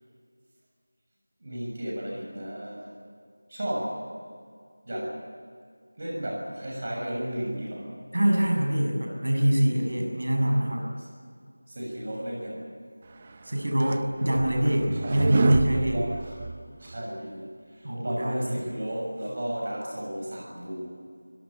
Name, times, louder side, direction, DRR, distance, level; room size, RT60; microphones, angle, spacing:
voice 1, 1.4-2.9 3.5-4.0 4.8-5.2 6.0-7.9 11.7-12.7 15.0-15.2 15.9-16.5 16.8-21.0, equal, 35° right, -2 dB, 6.8 m, -34 dB
voice 2, 8.1-10.9 13.4-16.0 17.8-18.6, equal, 65° right, 1 dB, 6.6 m, -24 dB
sound 1, 13.3-17.0, right 4 dB, 20° right, 0.6 m, -29 dB
25.0 x 18.0 x 8.6 m, 2.1 s
figure-of-eight pair, 180°, 0 cm